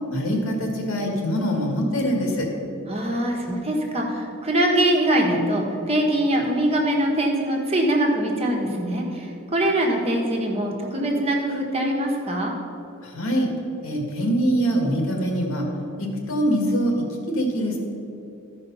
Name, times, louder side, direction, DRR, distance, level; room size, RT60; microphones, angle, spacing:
voice 1, 0.1-2.5 13.0-13.5 13.8-15.7 16.0-16.9 17.3-17.8, equal, 80° left, 1 dB, 2.0 m, -23 dB
voice 2, 2.9-12.5, right 1 dB, 30° right, 0 dB, 1.4 m, -23 dB
13.5 x 5.3 x 5.6 m, 2.8 s
head